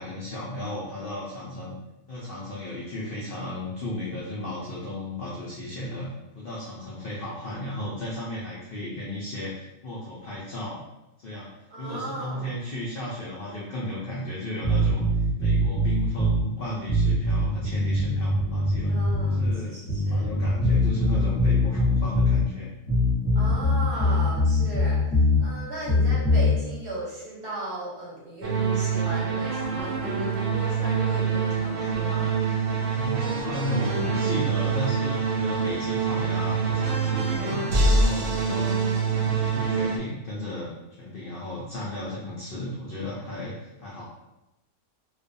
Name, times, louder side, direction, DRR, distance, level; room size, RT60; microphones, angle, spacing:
voice 1, 0.0-1.8 2.1-6.1 6.4-10.8 11.2-11.5 11.8-19.0 19.3-22.7 32.9-38.7 39.0-44.0, left 1 dB, 75° left, -6 dB, 0.5 m, -34 dB
voice 2, 11.7-12.6 18.9-20.3 23.3-32.3 38.4-39.1, right 1 dB, 50° right, -7 dB, 0.8 m, -36 dB
sound 1, 14.6-16.4 16.9-19.5 19.9-22.4 22.9-25.4 25.9-26.5, left 1 dB, 25° left, 0.7 m, -22 dB
sound 2, 28.4-40.0, right 4 dB, 80° right, 0.5 m, -25 dB
2.4 x 2.2 x 2.6 m, 0.97 s
omnidirectional pair, 1.5 m